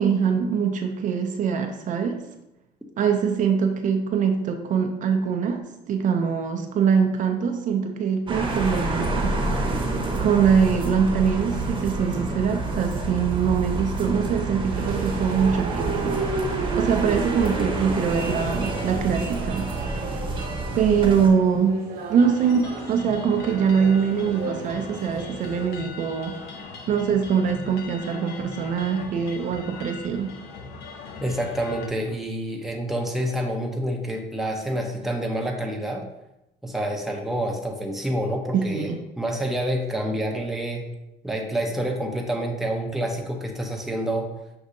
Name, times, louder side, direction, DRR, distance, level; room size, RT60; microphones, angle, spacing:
voice 1, 0.0-2.2 3.0-5.6 5.9-9.3 10.2-19.7 20.8-21.8 22.1-30.3 38.5-39.0, right 6 dB, 50° right, 5 dB, 0.4 m, -23 dB
sound 1, 8.3-21.3, right 2 dB, 30° right, 0.8 m, -28 dB
sound 2, 14.7-25.8, right 4 dB, 65° right, 0.9 m, -33 dB
sound 3, 22.2-31.9, left 4 dB, 75° left, 0.6 m, -39 dB
voice 2, 31.2-36.1 36.6-40.8 41.2-44.3, right 1 dB, ahead, 1 dB, 0.6 m, -28 dB
6.1 x 2.7 x 2.6 m, 0.91 s
cardioid pair, 110°, 17 cm